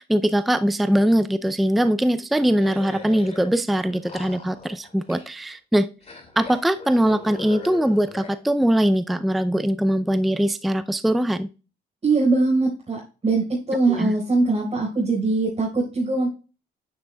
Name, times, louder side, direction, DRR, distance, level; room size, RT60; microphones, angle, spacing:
voice 1, 0.0-5.9 6.4-11.5 13.9-14.1, right 1 dB, ahead, 0.4 m, -21 dB
sound 1, 2.6-3.5 3.8-5.5 6.0-8.4, left 3 dB, 35° left, 2.5 m, -40 dB
voice 2, 12.0-16.3, right 3 dB, 30° right, 4.6 m, -22 dB
9.7 x 8.7 x 2.3 m
cardioid pair, 90°, 20 cm